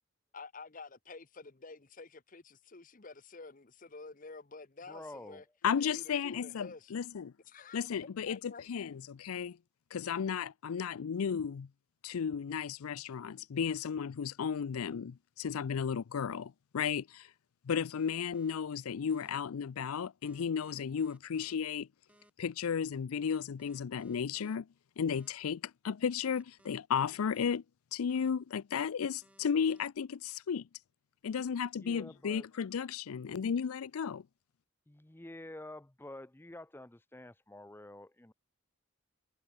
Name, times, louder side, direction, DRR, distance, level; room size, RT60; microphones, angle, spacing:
voice 1, 0.3-5.4 5.8-6.9 7.5-7.8 8.3-8.6, left 3 dB, 40° left, 0.9 m, -50 dB
voice 2, 4.9-5.4 31.8-32.4 34.9-38.3, left 1 dB, 10° left, 0.6 m, -48 dB
voice 3, 5.6-7.3 7.7-9.6 9.9-11.7 12.0-17.3 17.6-21.9 22.4-24.7 25.0-27.6 27.9-30.7 31.2-34.3, left 7 dB, 90° left, 0.4 m, -34 dB
sound 1, 18.0-18.5 19.1-19.3 20.2-21.6 22.1-22.3 23.2-24.6 25.1-25.3 26.2-27.6 28.1-28.3 29.2-29.8, right 1 dB, 5° right, 1.3 m, -64 dB
head